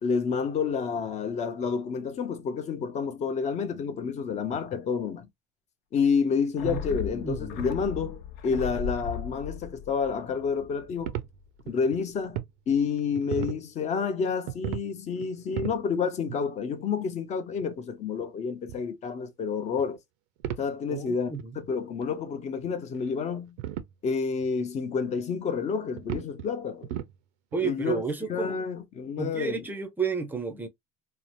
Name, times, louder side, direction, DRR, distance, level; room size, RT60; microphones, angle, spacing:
voice 1, 0.0-5.3 5.9-11.2 11.7-12.4 12.7-20.0 20.6-23.6 24.0-26.9 27.6-28.0 28.3-29.7, left 5 dB, 35° left, 0.6 m, -29 dB
sound 1, 6.6-11.2 11.5-11.6, left 6 dB, 75° left, 0.7 m, -37 dB
voice 2, 6.6-7.6 20.9-21.6 27.5-28.6 29.2-30.7, right 5 dB, 10° right, 0.5 m, -32 dB
sound 2, 11.1-12.5 12.9-13.6 14.3-14.9 15.2-15.8 16.3-16.4 17.6-17.7 18.7-18.8 19.8-20.0 20.4-20.7 21.1-21.2 21.4-21.5 22.0-22.1 22.7-23.1 23.6-23.9 24.6-24.7 25.2-25.3 26.0-26.5 26.8-27.2 27.5-27.6, right 11 dB, 85° right, 0.5 m, -35 dB
2.7 x 2.0 x 3.1 m
cardioid pair, 135°, 21 cm